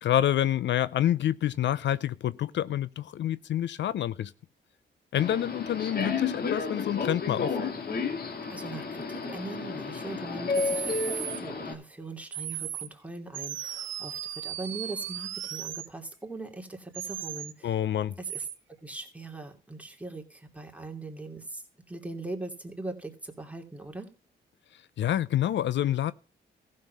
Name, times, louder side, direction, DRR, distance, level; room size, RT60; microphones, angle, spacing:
voice 1, 0.0-4.3 5.1-7.7 17.6-18.1 24.7-26.1, left 11 dB, 65° left, 0.5 m, -27 dB
Subway metro underground, 5.1-11.7, left 4 dB, 50° left, 2.4 m, -32 dB
voice 2, 8.5-17.7 18.2-18.4 18.8-24.1, right 2 dB, 5° right, 2.7 m, -40 dB
sound 1, 10.5-11.4 12.3-12.9 13.3-15.9 16.9-17.5 18.2-18.5, right 10 dB, 80° right, 1.0 m, -36 dB
15.0 x 6.6 x 5.4 m
cardioid pair, 90°, 20 cm